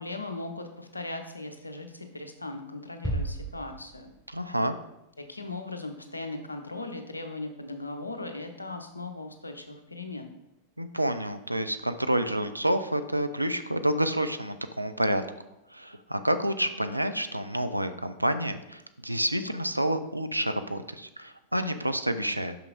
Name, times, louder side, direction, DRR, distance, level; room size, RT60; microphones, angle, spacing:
voice 1, 0.0-4.1 5.2-10.3, left 2 dB, 85° left, 6 dB, 0.7 m, -38 dB
sound 1, 3.0-4.6, right 1 dB, 5° left, 0.9 m, -34 dB
voice 2, 4.3-4.7 10.8-15.2 15.7-22.6, right 1 dB, 90° right, 9 dB, 0.4 m, -28 dB
5.9 x 5.7 x 4.0 m, 0.86 s
figure-of-eight pair, 90°, 0 cm